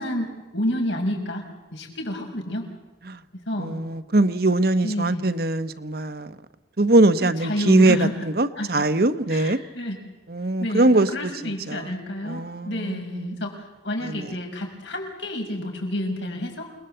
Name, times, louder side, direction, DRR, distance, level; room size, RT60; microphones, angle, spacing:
voice 1, 0.0-1.4 1.7-2.7 3.3-3.8 4.8-5.2 7.2-8.1 8.6-8.8 9.3-10.0 10.6-16.7, left 1 dB, 85° left, 3 dB, 6.1 m, -29 dB
voice 2, 3.6-6.3 6.8-9.6 10.3-11.9 12.2-13.4 14.0-14.3, right 2 dB, 55° right, 11 dB, 1.2 m, -22 dB
28.5 x 20.5 x 8.0 m, 1.0 s
head